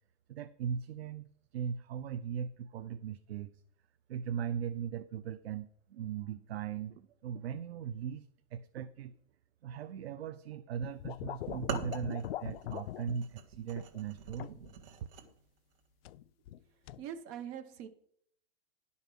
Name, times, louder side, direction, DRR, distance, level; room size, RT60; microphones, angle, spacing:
voice 1, 0.3-3.5 4.1-8.3 8.5-9.2 9.6-14.5, right 8 dB, 80° right, 10 dB, 0.7 m, -39 dB
sound 1, 10.8-13.2 13.8-14.0 14.4-14.7 16.0-16.6 16.9-17.1, left 13 dB, 70° left, 0.5 m, -41 dB
sound 2, 11.5-15.3, right 6 dB, 60° right, 1.8 m, -43 dB
voice 2, 17.0-17.9, right 9 dB, 35° right, 9 dB, 1.0 m, -42 dB
11.5 x 5.6 x 6.1 m, 0.67 s
supercardioid pair, 160°, 31 cm